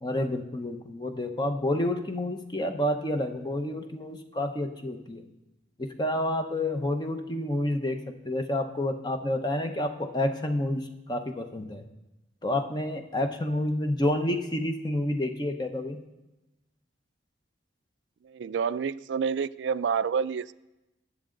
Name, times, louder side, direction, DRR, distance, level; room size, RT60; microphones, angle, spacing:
voice 1, 0.0-5.2 5.8-8.0 8.2-11.8 12.4-16.0, left 1 dB, 25° left, 6 dB, 0.8 m, -29 dB
voice 2, 18.2-20.5, right 6 dB, 90° right, 17 dB, 0.3 m, -28 dB
18.5 x 7.5 x 3.8 m, 0.99 s
head